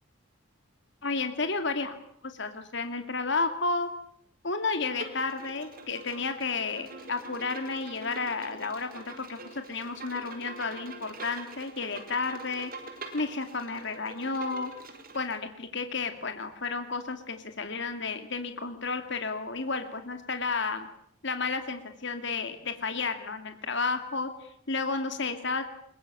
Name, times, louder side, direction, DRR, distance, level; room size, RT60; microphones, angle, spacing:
voice 1, 1.0-2.0 2.2-3.9 4.4-12.7 13.1-14.7 15.1-20.9 21.2-25.6, left 4 dB, 60° left, 7 dB, 2.4 m, -32 dB
Bowed string instrument, 4.8-15.4, right 3 dB, 45° right, 4.5 m, -45 dB
22.5 x 22.0 x 8.9 m, 0.66 s
head